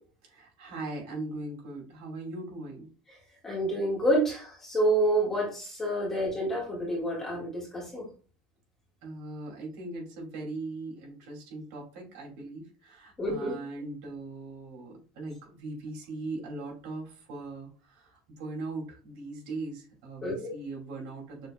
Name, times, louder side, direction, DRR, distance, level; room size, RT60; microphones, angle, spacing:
voice 1, 0.2-2.9 9.0-21.5, right 2 dB, 60° right, -1 dB, 2.6 m, -40 dB
voice 2, 3.4-8.1 13.2-13.5 20.2-20.5, right 1 dB, 15° left, -3 dB, 1.8 m, -28 dB
6.4 x 3.5 x 2.3 m, 0.37 s
cardioid pair, 165°, 3 cm